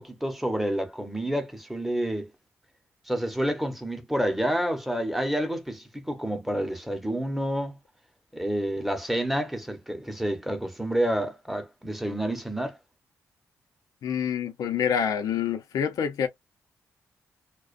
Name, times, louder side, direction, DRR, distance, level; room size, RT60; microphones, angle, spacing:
voice 1, 0.0-2.3 3.1-7.8 8.3-12.8, right 1 dB, ahead, 0.9 m, -29 dB
voice 2, 14.0-16.3, left 8 dB, 85° left, 0.7 m, -27 dB
2.4 x 2.2 x 2.5 m
cardioid pair, 85°, 6 cm